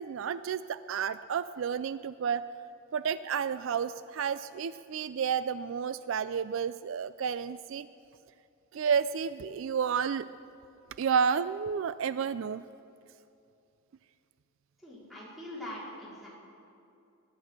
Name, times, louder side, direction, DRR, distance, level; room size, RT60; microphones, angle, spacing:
voice 1, 0.0-2.4 2.9-7.9 8.7-10.3 11.0-12.6, right 7 dB, 60° right, 14 dB, 0.3 m, -31 dB
voice 2, 14.8-16.3, left 1 dB, ahead, -8 dB, 4.3 m, -42 dB
20.5 x 10.5 x 6.6 m, 2.6 s
head